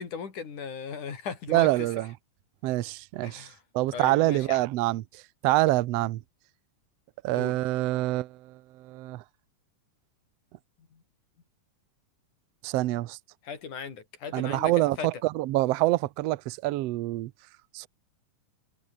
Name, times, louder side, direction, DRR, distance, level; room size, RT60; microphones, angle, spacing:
voice 1, 0.0-1.9 3.2-3.6 3.9-4.6 7.3-7.6 13.4-15.1, left 6 dB, 70° left, 4.9 m, -37 dB
voice 2, 1.5-2.1 2.6-3.5 3.7-5.0 5.4-6.2 7.2-9.2 12.6-13.2 14.3-17.3 17.7-17.9, right 18 dB, 75° right, 1.5 m, -26 dB
omnidirectional pair, 3.7 m